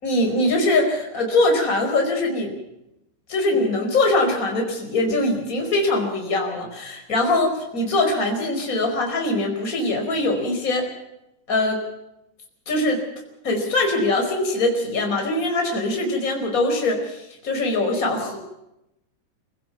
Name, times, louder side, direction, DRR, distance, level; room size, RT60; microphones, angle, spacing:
voice 1, 0.0-2.5 3.3-10.9 11.5-11.8 12.7-13.0 13.4-18.4, left 2 dB, 15° left, 2 dB, 4.7 m, -22 dB
28.0 x 16.0 x 5.9 m, 0.86 s
omnidirectional pair, 5.8 m